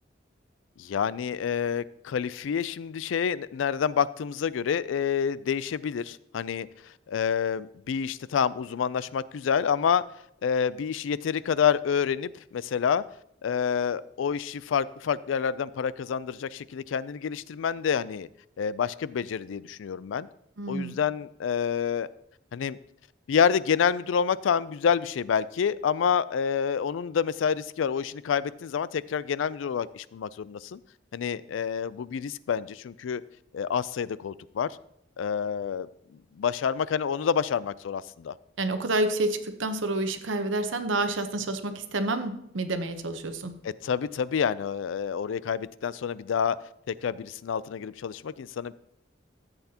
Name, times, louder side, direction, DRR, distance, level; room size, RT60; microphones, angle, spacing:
voice 1, 0.8-6.7 7.1-10.0 10.4-13.0 13.4-18.3 18.6-20.3 20.7-22.1 22.5-22.8 23.3-30.8 31.1-33.2 33.5-34.7 35.2-38.3 43.6-46.6 46.9-48.7, left 7 dB, 90° left, 18 dB, 0.4 m, -28 dB
voice 2, 20.6-21.0 38.6-43.5, right 2 dB, 85° right, 9 dB, 0.9 m, -29 dB
14.0 x 8.1 x 2.8 m, 0.74 s
head